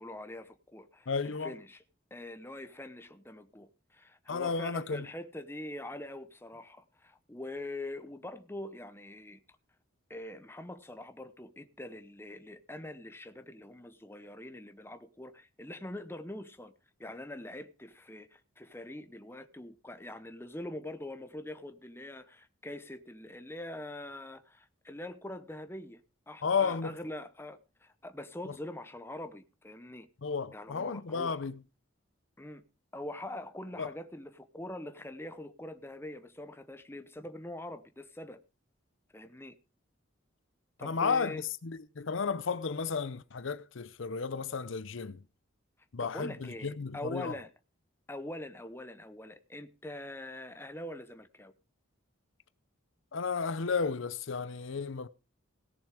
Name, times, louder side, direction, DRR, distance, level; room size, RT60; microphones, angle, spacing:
voice 1, 0.0-1.8 2.1-9.4 10.1-16.7 17.0-26.0 26.3-30.1 30.5-31.4 32.4-32.6 32.9-38.4 39.1-39.6 40.8-41.4 46.0-47.5 48.1-51.5, left 1 dB, 10° left, 0.8 m, -44 dB
voice 2, 1.1-1.5 4.3-5.1 26.4-26.9 30.2-31.6 33.8-33.9 40.8-45.2 45.9-47.3 53.1-55.1, left 5 dB, 70° left, 0.6 m, -33 dB
17.0 x 7.0 x 4.9 m
head